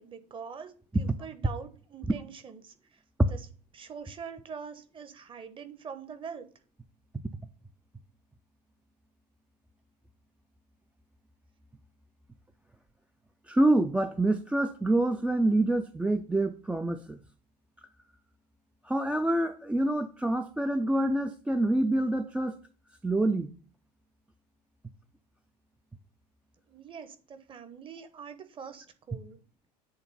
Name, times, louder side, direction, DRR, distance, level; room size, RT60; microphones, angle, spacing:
voice 1, 0.0-3.0 3.3-3.4 3.7-6.5 26.7-29.4, right 6 dB, 25° right, 1.0 m, -44 dB
voice 2, 13.5-17.2 18.8-22.6 23.0-23.5, right 1 dB, 5° right, 0.4 m, -26 dB
8.0 x 3.7 x 5.4 m
figure-of-eight pair, 70°, 21 cm